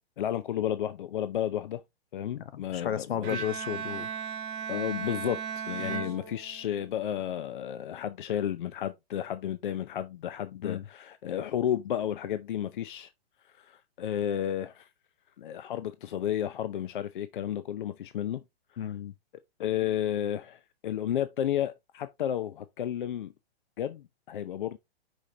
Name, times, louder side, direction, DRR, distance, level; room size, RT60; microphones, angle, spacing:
voice 1, 0.2-1.8 2.1-3.4 4.7-13.1 13.6-14.9 15.4-18.4 19.6-23.3 23.8-24.8, left 10 dB, 55° left, 0.6 m, -32 dB
voice 2, 2.5-4.1 5.8-6.0 10.6-10.8 18.8-19.1, left 9 dB, 70° left, 1.0 m, -33 dB
Bowed string instrument, 3.2-7.0, right 7 dB, 15° right, 0.6 m, -36 dB
6.3 x 5.1 x 2.9 m
hypercardioid pair, 165°, 31 cm